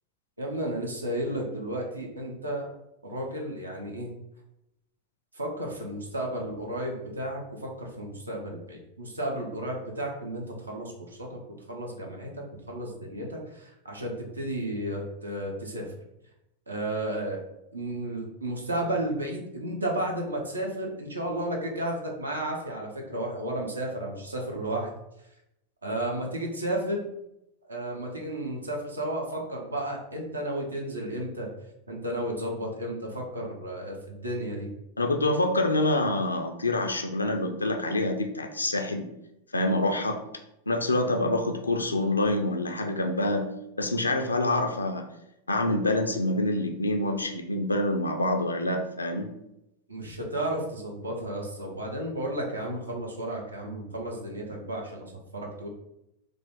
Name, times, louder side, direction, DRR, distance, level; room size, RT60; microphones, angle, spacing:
voice 1, 0.4-2.7 3.0-4.1 5.3-15.9 16.7-17.4 17.7-24.9 25.8-27.0 27.7-31.5 31.9-34.7 49.9-55.7, right 1 dB, 80° right, 0 dB, 0.7 m, -33 dB
voice 2, 35.0-39.1 39.5-40.2 40.7-43.5 43.8-45.0 45.5-49.3, left 2 dB, 80° left, 5 dB, 0.4 m, -26 dB
3.3 x 2.4 x 3.6 m, 0.85 s
figure-of-eight pair, 90°, 0 cm